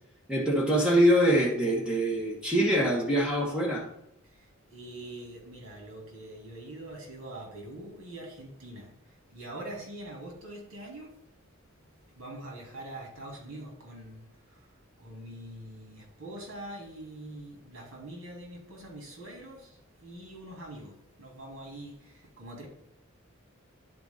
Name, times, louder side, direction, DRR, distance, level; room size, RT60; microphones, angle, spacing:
voice 1, 0.3-3.9, equal, 5° right, -3 dB, 1.3 m, -24 dB
voice 2, 4.3-11.1 12.1-14.7 15.0-22.7, right 1 dB, 85° right, -1 dB, 3.4 m, -44 dB
10.5 x 4.5 x 4.0 m, 0.79 s
head